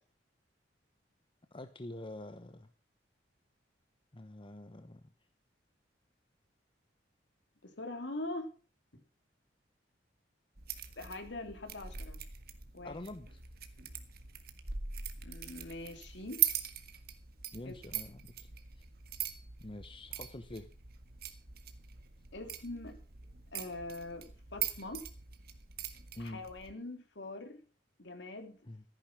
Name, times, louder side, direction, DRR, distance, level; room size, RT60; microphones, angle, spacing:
voice 1, 1.5-2.7 4.1-5.0 12.8-13.4 17.5-18.5 18.8-18.9 19.6-20.7 26.1-26.4 28.7-28.8, left 1 dB, 30° left, 9 dB, 1.0 m, -46 dB
voice 2, 7.6-8.5 11.0-12.2 12.7-13.0 15.2-16.4 17.6-17.7 22.3-23.0 23.5-24.2 24.5-25.0 26.2-27.6 28.0-28.6, left 2 dB, 70° left, 6 dB, 2.9 m, -43 dB
sound 1, 10.6-26.7, right 10 dB, 55° right, 1.8 m, -41 dB
14.5 x 10.0 x 6.0 m, 0.39 s
head